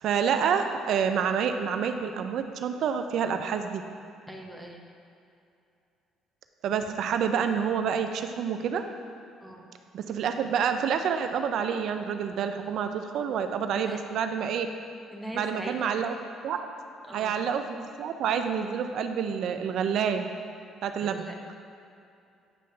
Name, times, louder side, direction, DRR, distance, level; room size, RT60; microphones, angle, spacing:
voice 1, 0.0-3.8 6.6-8.8 9.9-14.7 15.3-16.1 16.4-16.6 17.1-20.3 20.8-21.3, right 7 dB, 70° right, 7 dB, 0.5 m, -28 dB
voice 2, 4.3-4.8 9.4-9.6 13.7-14.0 15.1-15.9 17.1-17.4 21.0-21.5, right 1 dB, ahead, 0 dB, 1.0 m, -41 dB
9.0 x 3.1 x 5.7 m, 2.6 s
supercardioid pair, 70°, 0 cm